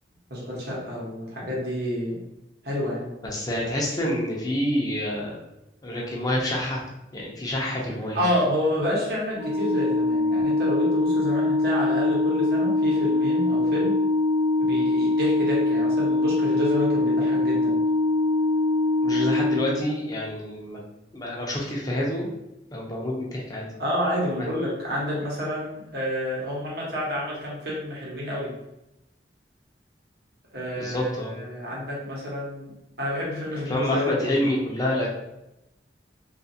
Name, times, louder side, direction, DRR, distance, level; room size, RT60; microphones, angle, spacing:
voice 1, 0.3-2.2 2.6-3.1 8.1-14.0 14.6-17.8 23.8-28.5 30.5-32.7 33.0-34.5, left 1 dB, 60° right, -5 dB, 1.0 m, -29 dB
voice 2, 3.2-5.4 5.8-6.8 7.1-8.2 19.0-20.8 21.1-22.3 22.7-23.6 24.4-24.5 30.8-31.3 33.7-35.1, left 1 dB, 20° left, -3 dB, 0.6 m, -27 dB
Organ, 9.3-20.2, left 2 dB, 75° left, 0.6 m, -23 dB
2.6 x 2.5 x 2.7 m, 0.89 s
head